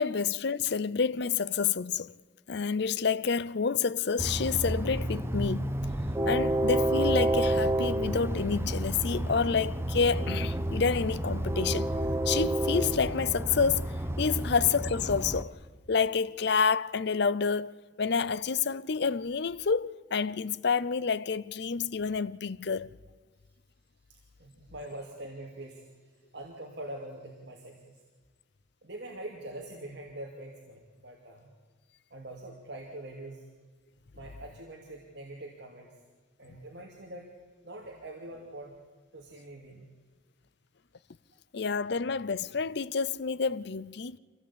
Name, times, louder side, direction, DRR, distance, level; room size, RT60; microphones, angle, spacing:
voice 1, 0.0-2.1 2.5-5.8 6.3-11.9 12.3-15.6 15.9-17.7 18.0-22.9 41.5-44.2, left 5 dB, 55° left, 0.6 m, -28 dB
Train, 4.2-15.4, right 1 dB, 15° right, 0.9 m, -30 dB
voice 2, 24.1-28.0 28.8-31.5 32.1-33.5 34.1-35.9 36.4-37.3 37.6-38.7 39.1-39.9, right 1 dB, 60° right, 2.5 m, -44 dB
24.5 x 16.5 x 8.5 m
head